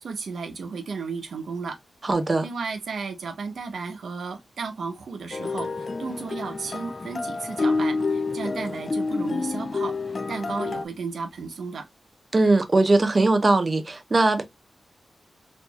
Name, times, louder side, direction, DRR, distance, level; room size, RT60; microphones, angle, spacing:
voice 1, 0.0-1.8 2.4-9.9 10.3-11.9, right 4 dB, 85° right, 0.8 m, -34 dB
voice 2, 2.0-2.5 12.3-14.4, right 2 dB, 35° right, 0.6 m, -20 dB
sound 1, 5.3-10.8, left 3 dB, 40° left, 0.3 m, -28 dB
4.3 x 2.6 x 2.3 m
wide cardioid pair, 110°, 0 cm